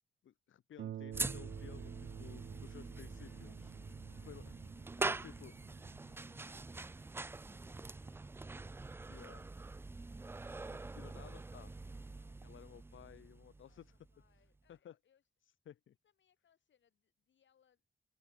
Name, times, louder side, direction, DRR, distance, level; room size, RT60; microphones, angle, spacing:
voice 1, 0.2-3.7 4.3-4.5 5.0-5.5 9.1-9.4 10.7-11.7 12.4-14.0 14.7-14.9 15.6-15.9, left 10 dB, 85° left, 1.7 m, -56 dB
Harp, 0.8-10.0 10.8-10.9 11.4-11.5, right 11 dB, 75° right, 0.7 m, -52 dB
sound 1, 1.1-14.4, right 3 dB, 10° right, 0.3 m, -44 dB
voice 2, 3.1-3.5 3.8-4.5 5.2-5.5 5.8-11.4 11.7-12.6 13.6-15.2 16.0-17.8, left 8 dB, 70° left, 6.6 m, -76 dB
open air
wide cardioid pair, 140°, 20 cm